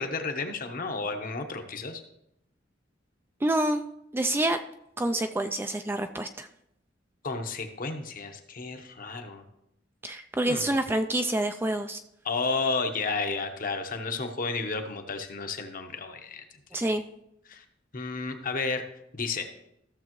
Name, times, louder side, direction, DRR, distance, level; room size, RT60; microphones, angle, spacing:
voice 1, 0.0-2.0 7.2-9.4 10.4-10.7 12.2-16.4 17.5-17.6 17.9-18.8 19.1-19.5, left 4 dB, 50° left, 6 dB, 1.0 m, -32 dB
voice 2, 3.4-3.8 4.1-4.6 5.0-6.5 10.0-12.0 16.7-17.0, right 1 dB, 10° right, 8 dB, 0.3 m, -27 dB
14.5 x 6.7 x 3.1 m, 0.80 s
head